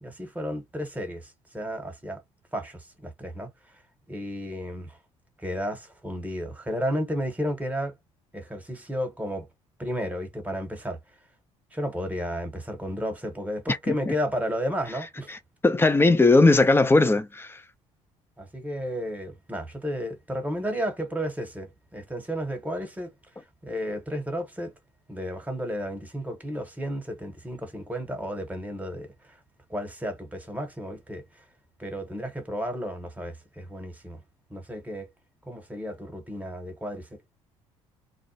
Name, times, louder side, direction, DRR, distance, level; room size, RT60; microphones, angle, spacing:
voice 1, 0.0-2.2 2.5-3.8 4.1-5.0 5.4-7.9 8.3-9.5 9.8-11.0 11.7-15.3 18.4-23.1 23.6-24.7 25.1-29.4 29.7-31.4 31.8-34.2 34.5-35.1 35.5-37.2, equal, 10° right, 1.1 m, -33 dB
voice 2, 15.6-17.6, left 2 dB, 15° left, 0.6 m, -19 dB
2.3 x 2.0 x 2.8 m
hypercardioid pair, 55°, 15 cm